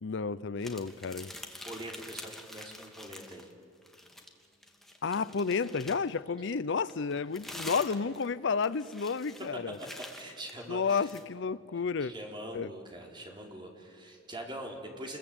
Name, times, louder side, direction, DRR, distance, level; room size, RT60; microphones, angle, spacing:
voice 1, 0.0-1.3 5.0-9.8 10.7-12.1 12.5-12.7, left 5 dB, 65° left, 0.6 m, -31 dB
sound 1, 0.6-3.5 3.8-6.2 6.9-11.3, left 1 dB, ahead, 2.4 m, -46 dB
voice 2, 1.7-3.5 9.9-11.1 11.7-15.2, right 1 dB, 25° right, 4.2 m, -43 dB
30.0 x 22.0 x 8.8 m
head